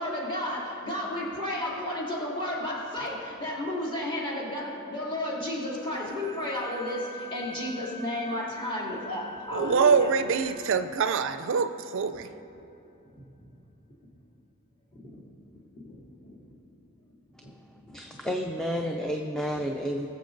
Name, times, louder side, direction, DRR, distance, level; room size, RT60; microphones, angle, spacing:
voice 1, 0.0-10.1 13.1-13.2 14.9-15.2 15.8-16.3 17.4-17.5, left 1 dB, 25° left, 2.7 m, -33 dB
sound 1, 5.7-12.1, left 2 dB, 40° left, 1.4 m, -45 dB
voice 2, 9.5-12.3, right 5 dB, 60° right, 0.4 m, -24 dB
voice 3, 17.9-20.1, equal, 5° left, 0.5 m, -31 dB
21.0 x 7.3 x 3.9 m
head